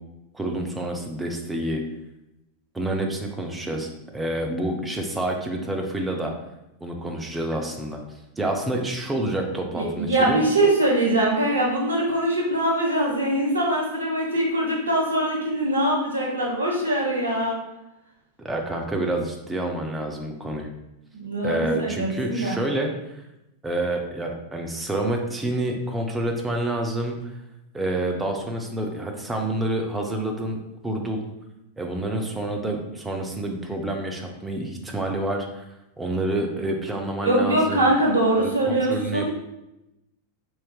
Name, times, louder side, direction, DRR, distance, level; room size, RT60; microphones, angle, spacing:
voice 1, 0.3-1.8 2.7-6.3 6.8-8.0 8.4-10.4 18.4-20.7 21.4-22.9 23.6-27.2 27.7-31.2 31.8-35.7 36.0-37.9 38.4-39.3, right 1 dB, 10° right, 2 dB, 0.6 m, -28 dB
voice 2, 9.7-17.6 21.1-22.6 37.2-39.3, right 1 dB, 75° right, -2 dB, 0.9 m, -22 dB
4.3 x 3.1 x 2.3 m, 0.91 s
figure-of-eight pair, 90°, 0 cm